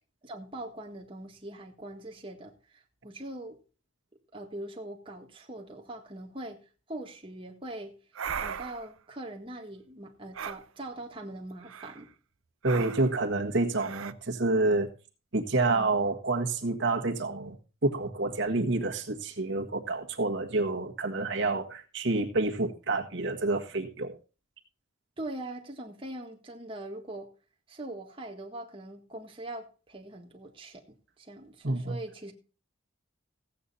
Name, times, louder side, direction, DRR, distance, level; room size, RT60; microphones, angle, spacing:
voice 1, 0.2-3.6 4.3-8.0 8.4-12.1 15.6-15.9 25.2-27.3 27.7-32.3, right 1 dB, 25° right, 1.7 m, -42 dB
sound 1, 8.1-8.9 10.3-10.6 11.6-12.0 12.6-13.2 13.7-14.1, right 7 dB, 90° right, 0.7 m, -37 dB
voice 2, 12.6-14.9 15.3-17.6 17.8-24.1 31.6-32.0, right 2 dB, 60° right, 1.5 m, -28 dB
15.5 x 8.4 x 4.1 m
head